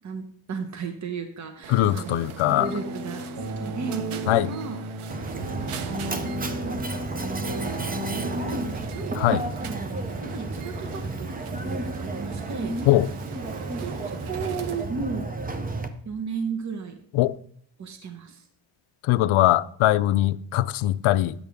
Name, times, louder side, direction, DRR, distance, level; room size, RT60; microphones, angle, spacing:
voice 1, 0.0-4.8 5.4-5.8 6.2-9.2 9.6-12.7 13.8-15.3 16.0-17.0 17.8-18.5, right 5 dB, 35° right, 1.0 m, -35 dB
sound 1, 1.6-14.9, right 8 dB, 90° right, 0.9 m, -42 dB
voice 2, 1.7-2.7 4.3-4.5 9.2-9.4 12.9-13.1 17.1-17.3 19.1-21.3, left 14 dB, 80° left, 0.5 m, -21 dB
sound 2, 2.5-8.7, right 1 dB, 60° right, 2.0 m, -34 dB
Mechanisms, 5.1-15.9, right 2 dB, 20° right, 0.5 m, -32 dB
9.8 x 8.4 x 3.5 m
wide cardioid pair, 160°, 49 cm